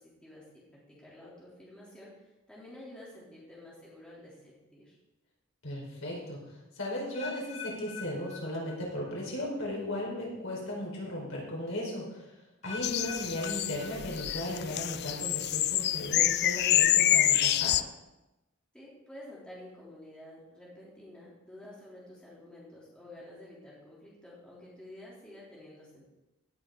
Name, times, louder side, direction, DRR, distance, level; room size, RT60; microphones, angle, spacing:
voice 1, 0.0-0.4 1.0-2.1 2.5-5.0 18.7-26.1, left 1 dB, 5° left, -7 dB, 3.5 m, -50 dB
voice 2, 5.6-6.4 6.7-12.2 12.6-17.7, left 1 dB, 70° left, -3 dB, 4.9 m, -36 dB
sound 1, 7.1-9.2 9.4-9.9 10.5-10.6 12.6-14.6 14.9-15.3 16.0-16.1, left 6 dB, 35° left, 2.0 m, -45 dB
sound 2, 12.8-17.8, left 13 dB, 50° left, 0.4 m, -27 dB
17.0 x 8.4 x 4.0 m, 0.98 s
head